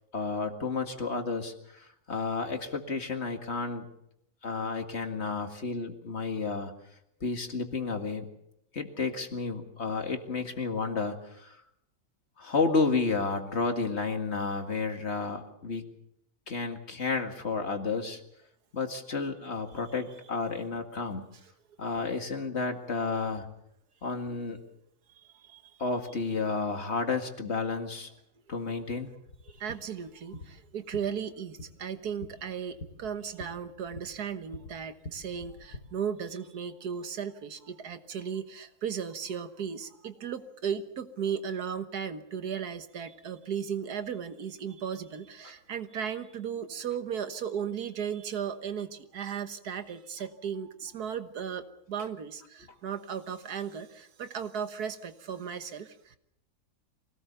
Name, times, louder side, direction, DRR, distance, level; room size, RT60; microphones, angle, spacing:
voice 1, 0.1-3.9 4.4-6.7 7.2-8.3 8.7-11.6 12.4-15.8 16.5-18.2 18.7-21.2 21.8-23.5 24.0-24.6 25.8-28.1 28.5-29.1, left 4 dB, 45° left, 5 dB, 2.2 m, -31 dB
voice 2, 25.2-25.7 29.5-56.2, right 7 dB, 80° right, 9 dB, 1.8 m, -36 dB
sound 1, 29.3-35.8, left 2 dB, 90° left, 2.5 m, -47 dB
24.0 x 18.0 x 7.0 m, 0.78 s
omnidirectional pair, 1.6 m